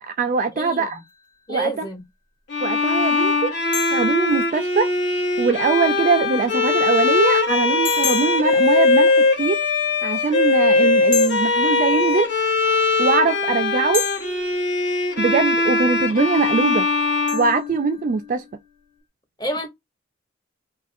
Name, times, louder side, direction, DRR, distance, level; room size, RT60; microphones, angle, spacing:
voice 1, 0.0-1.0 1.5-1.7 2.6-3.5 3.9-4.9 5.4-9.6 10.0-12.3 13.0-14.0 15.2-16.9 17.3-18.4, right 4 dB, 45° right, 0.3 m, -22 dB
sound 1, 0.7-1.5 3.7-5.1 7.8-9.6 11.1-12.5 13.9-15.3 17.3-18.5, left 7 dB, 40° left, 1.0 m, -33 dB
voice 2, 1.5-2.0 2.6-2.7 19.4-19.7, right 1 dB, 20° left, 0.8 m, -28 dB
Bowed string instrument, 2.5-18.2, left 3 dB, 65° left, 1.0 m, -20 dB
3.2 x 2.4 x 2.5 m
head